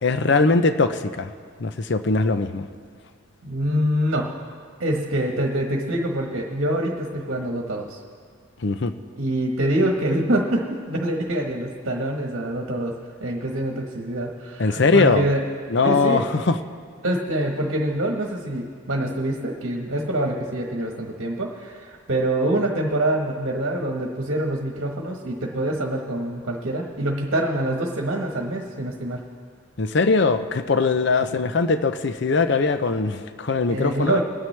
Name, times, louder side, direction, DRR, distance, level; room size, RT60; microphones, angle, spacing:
voice 1, 0.0-1.3 1.6-2.7 8.6-8.9 14.6-15.3 15.7-16.6 29.8-34.2, left 4 dB, 55° left, 10 dB, 0.6 m, -21 dB
voice 2, 3.4-4.3 4.8-8.0 9.2-12.9 13.2-15.4 15.8-16.3 17.0-29.2 33.7-34.2, right 1 dB, 60° right, 0 dB, 1.3 m, -25 dB
22.5 x 9.3 x 3.3 m, 2.1 s
head